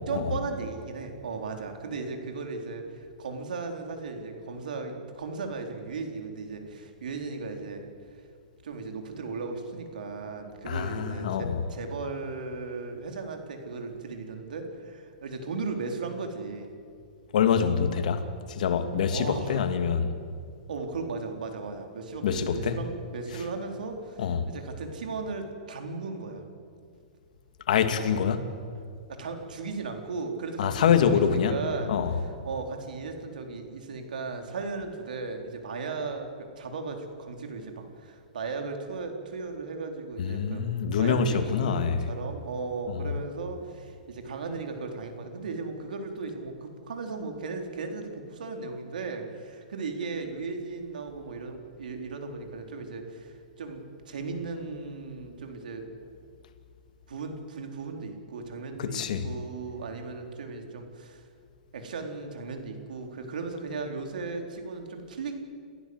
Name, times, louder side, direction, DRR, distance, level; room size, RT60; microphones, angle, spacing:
voice 1, 0.1-7.9 8.6-16.7 19.1-19.6 20.7-26.4 29.1-40.6 40.9-55.8 57.1-61.2 61.7-65.4, right 4 dB, 80° right, 4 dB, 4.1 m, -36 dB
voice 2, 10.6-11.6 17.3-18.2 18.5-20.1 22.2-22.8 24.2-24.5 27.7-28.4 30.6-31.6 31.9-32.2 40.2-42.1 58.8-59.2, left 7 dB, 65° left, 8 dB, 2.4 m, -25 dB
29.0 x 15.0 x 8.0 m, 2.3 s
hypercardioid pair, 145°, 4 cm